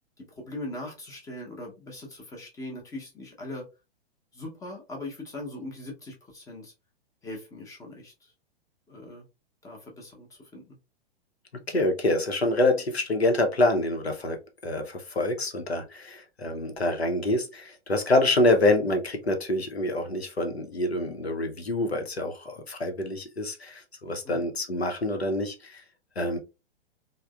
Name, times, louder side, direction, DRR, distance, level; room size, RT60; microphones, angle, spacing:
voice 1, 0.2-3.6 4.3-6.7 7.2-8.3 8.9-9.2 9.6-10.8 24.1-24.4, left 1 dB, 10° left, 0.7 m, -40 dB
voice 2, 11.7-25.8 26.2-26.4, left 1 dB, 90° left, 0.7 m, -26 dB
3.2 x 2.0 x 2.3 m
figure-of-eight pair, 105°, 31 cm